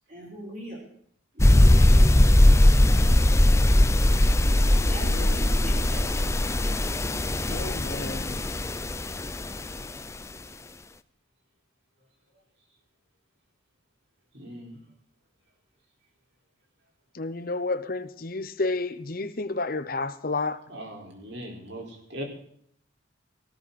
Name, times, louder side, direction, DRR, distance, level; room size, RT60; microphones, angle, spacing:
voice 1, 0.1-0.8 1.3-3.4 4.9-6.7, equal, 40° right, 5.8 m, -42 dB
sound 1, 1.4-9.8, left 1 dB, 15° left, 0.6 m, -20 dB
voice 2, 7.5-8.4 17.1-20.6, left 3 dB, 45° left, 0.9 m, -31 dB
voice 3, 14.3-14.8 20.7-22.2, equal, 65° right, 5.0 m, -40 dB
18.5 x 16.0 x 4.3 m
head